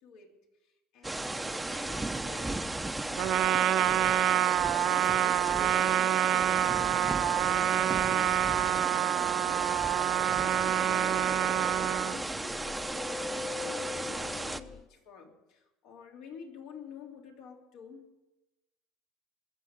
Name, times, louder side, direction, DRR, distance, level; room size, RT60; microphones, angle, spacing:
voice 1, 0.0-0.4 0.9-4.5 4.8-10.5 11.3-18.1, left 5 dB, 70° left, 1 dB, 3.4 m, -50 dB
sound 1, 1.0-14.6, right 2 dB, 10° right, 0.8 m, -35 dB
Trumpet, 3.2-12.2, right 12 dB, 55° right, 0.6 m, -27 dB
sound 2, 10.2-14.9, left 5 dB, 30° left, 0.5 m, -43 dB
22.0 x 7.4 x 8.3 m, 1.0 s
supercardioid pair, 100°, 0 cm